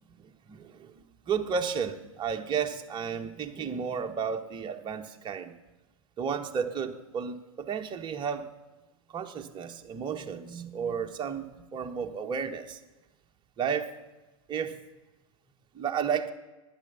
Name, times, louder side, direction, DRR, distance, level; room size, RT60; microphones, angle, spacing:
voice 1, 0.2-5.5 6.2-8.5 9.1-12.8 13.6-13.9 14.5-14.8 15.7-16.3, right 6 dB, 25° right, 6 dB, 1.2 m, -33 dB
12.0 x 9.8 x 6.9 m, 1.1 s
hypercardioid pair, 105°, 18 cm